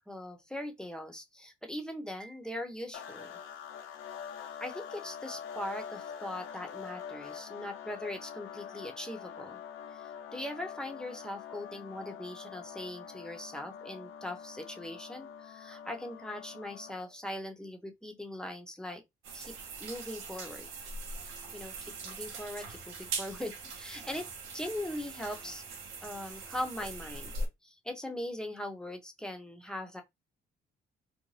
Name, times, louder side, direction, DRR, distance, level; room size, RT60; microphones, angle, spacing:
voice 1, 0.1-3.4 4.6-9.6 9.9-19.0 19.3-20.7 21.5-24.3 24.5-25.6 26.0-27.3 27.6-30.0, left 1 dB, 5° left, 0.7 m, -40 dB
sound 1, 2.9-17.1, left 8 dB, 75° left, 0.6 m, -45 dB
sound 2, 19.2-27.5, right 3 dB, 90° right, 0.8 m, -41 dB
2.5 x 2.2 x 3.2 m
cardioid pair, 90°, 20 cm